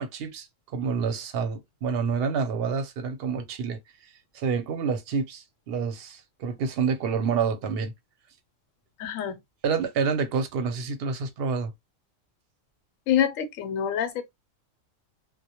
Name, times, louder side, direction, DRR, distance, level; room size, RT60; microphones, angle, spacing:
voice 1, 0.0-3.8 4.3-7.9 9.6-11.7, right 5 dB, 60° right, 0.7 m, -28 dB
voice 2, 9.0-9.4 13.1-14.2, left 9 dB, 90° left, 1.0 m, -26 dB
2.1 x 2.1 x 2.8 m
omnidirectional pair, 1.3 m